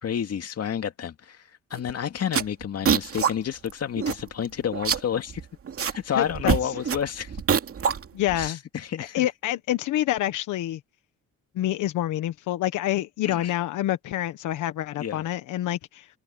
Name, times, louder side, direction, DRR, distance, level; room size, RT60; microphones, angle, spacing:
voice 1, 0.0-5.4 5.8-7.4 8.4-9.3 13.2-13.5 15.0-15.2, left 8 dB, 55° left, 2.2 m, -30 dB
sound 1, 1.7-1.9 2.2-3.3 3.7-3.8 4.0-4.5 4.7-6.0 6.3-8.5, right 7 dB, 50° right, 2.4 m, -25 dB
voice 2, 6.1-6.6 8.1-8.6 9.0-10.8 11.5-16.1, left 13 dB, 85° left, 1.3 m, -27 dB
cardioid pair, 90°, 30 cm